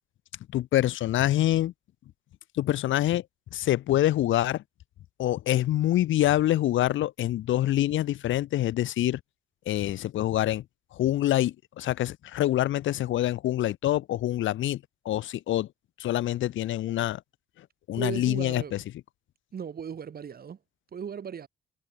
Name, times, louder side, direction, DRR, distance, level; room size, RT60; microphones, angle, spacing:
voice 1, 0.5-1.7 2.5-3.2 3.5-4.6 5.2-9.2 9.7-10.6 10.9-15.7 16.0-17.2 17.9-18.8, left 13 dB, 75° left, 1.0 m, -26 dB
voice 2, 18.0-18.8 19.5-20.6 20.9-21.5, right 7 dB, 50° right, 5.3 m, -36 dB
cardioid pair, 90°, 20 cm